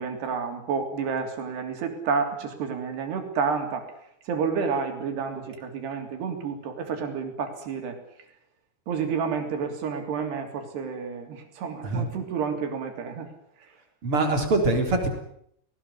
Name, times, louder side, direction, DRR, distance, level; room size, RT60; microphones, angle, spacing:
voice 1, 0.0-3.9 4.3-8.0 8.9-13.3, right 5 dB, 90° right, 5 dB, 5.3 m, -30 dB
voice 2, 14.0-15.1, right 2 dB, 35° right, 3 dB, 4.3 m, -23 dB
19.5 x 19.0 x 9.7 m, 0.72 s
omnidirectional pair, 4.6 m